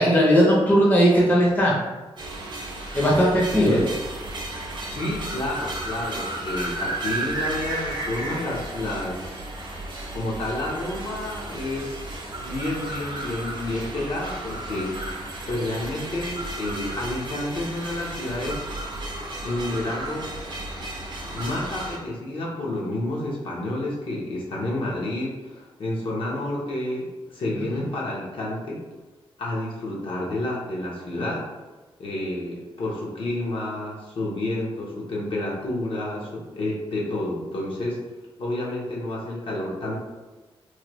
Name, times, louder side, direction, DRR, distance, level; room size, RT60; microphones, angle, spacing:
voice 1, 0.0-1.7 2.9-3.8 27.7-27.8, equal, 15° left, -4 dB, 0.6 m, -18 dB
sound 1, 2.2-22.0, right 2 dB, 50° right, 0.5 m, -33 dB
voice 2, 3.5-3.9 4.9-9.4 10.1-12.1 12.4-14.9 15.5-18.6 19.4-20.3 21.3-28.8 29.4-31.4 32.0-38.0 38.4-40.0, left 1 dB, 60° left, -3 dB, 0.8 m, -30 dB
3.1 x 2.2 x 3.0 m, 1.2 s
wide cardioid pair, 145°, 10 cm